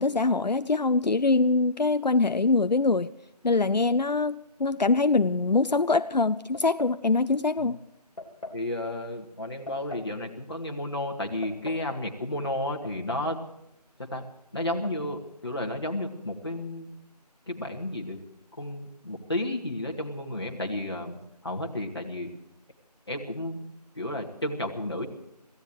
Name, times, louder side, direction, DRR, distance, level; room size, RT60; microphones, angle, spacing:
voice 1, 0.0-3.1 3.4-7.8, left 3 dB, 85° left, 13 dB, 0.6 m, -23 dB
sound 1, 6.5-7.0 8.2-8.6 9.7-10.1 11.2-11.9 12.8-13.4 13.6-13.7 14.6-15.0, left 2 dB, 55° left, 3.1 m, -42 dB
voice 2, 8.5-13.4 14.1-14.2 14.5-16.9 17.5-18.2 18.6-21.2 21.4-22.3 23.1-23.6 24.0-25.1, left 1 dB, 40° left, 1 dB, 2.3 m, -32 dB
26.5 x 16.5 x 3.2 m, 0.82 s
figure-of-eight pair, 175°, 21 cm